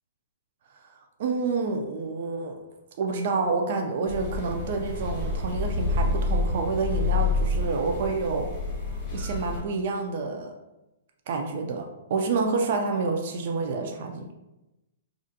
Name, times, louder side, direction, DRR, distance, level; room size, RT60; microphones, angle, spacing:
voice 1, 1.2-2.6 3.0-8.5 9.1-10.5 11.3-14.3, right 4 dB, 50° right, 3 dB, 0.3 m, -28 dB
sound 1, 4.1-9.6, left 3 dB, 25° left, 0.7 m, -28 dB
2.4 x 2.1 x 2.7 m, 0.96 s
hypercardioid pair, 155°, 0 cm